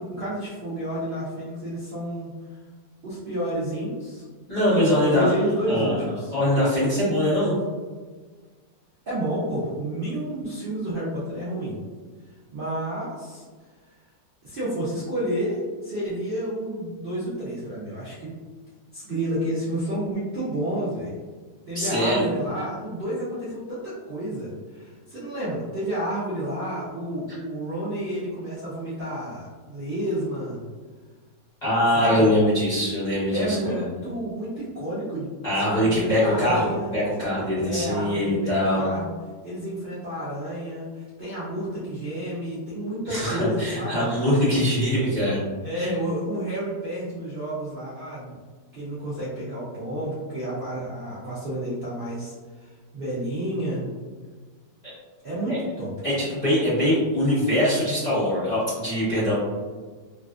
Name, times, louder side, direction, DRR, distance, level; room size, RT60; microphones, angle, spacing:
voice 1, 0.0-2.6 3.0-4.3 5.0-6.3 9.1-11.8 12.5-13.4 14.4-18.3 18.9-21.1 21.7-30.6 31.9-32.3 33.3-35.3 35.6-36.9 37.6-39.1 39.4-44.1 45.6-48.3 48.7-53.8 55.2-55.9, right 1 dB, 50° right, -10 dB, 0.6 m, -30 dB
voice 2, 4.5-5.3 5.7-6.0 6.3-7.6 21.7-22.3 27.3-27.4 31.6-33.8 35.4-38.9 43.1-45.4 45.7-46.0 54.8-54.9 55.5-55.6 56.0-59.3, left 1 dB, 25° left, -11 dB, 1.3 m, -23 dB
3.1 x 2.5 x 2.4 m, 1.4 s
omnidirectional pair, 1.9 m